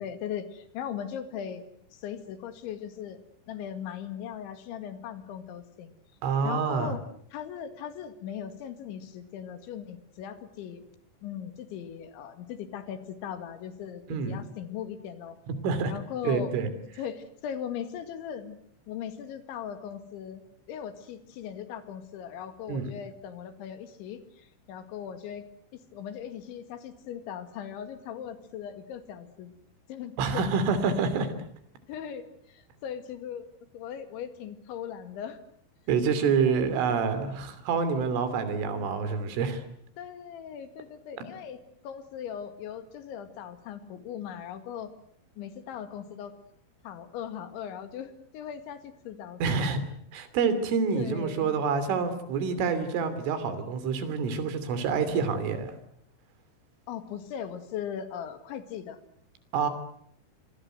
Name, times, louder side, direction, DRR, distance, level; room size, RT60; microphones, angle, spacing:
voice 1, 0.0-1.6 1.9-3.2 3.5-5.9 6.4-7.0 7.3-10.9 11.2-15.4 15.9-16.6 17.0-18.6 18.9-25.4 25.9-29.5 29.9-30.4 31.9-33.5 33.7-35.4 36.5-36.7 40.0-41.6 41.8-44.9 45.4-46.4 46.8-49.8 50.9-51.6 56.9-59.0, left 9 dB, 75° left, 10 dB, 4.3 m, -39 dB
voice 2, 6.2-6.9 14.1-14.4 15.5-15.9 16.2-16.7 22.7-22.9 30.2-31.3 35.9-39.6 49.4-49.8 50.1-55.7 59.5-59.7, right 5 dB, 90° right, 12 dB, 5.4 m, -27 dB
27.0 x 23.0 x 7.9 m, 0.65 s
omnidirectional pair, 5.5 m